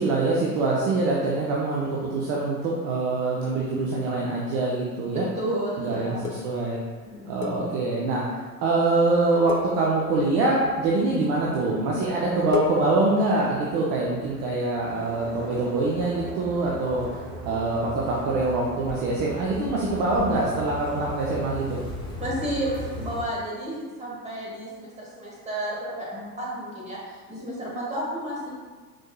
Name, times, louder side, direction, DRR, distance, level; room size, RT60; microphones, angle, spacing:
voice 1, 0.0-5.2 5.8-6.8 7.2-17.2 17.5-21.8, right 2 dB, 40° right, -4 dB, 0.7 m, -24 dB
voice 2, 5.1-6.3 7.0-7.7 22.2-28.5, right 1 dB, 15° right, -5 dB, 1.5 m, -32 dB
sound 1, 6.2-8.2 8.5-8.8 9.0-9.2 9.5-10.6 11.3-11.8 12.1-12.2 12.5-14.6 15.1-15.8 16.1-22.3, left 8 dB, 70° left, 0.6 m, -38 dB
sound 2, 10.3-23.2, left 1 dB, 10° left, 1.2 m, -40 dB
sound 3, 14.9-21.1, right 3 dB, 80° right, 0.8 m, -43 dB
4.5 x 4.3 x 2.3 m, 1.5 s
figure-of-eight pair, 75°, 48 cm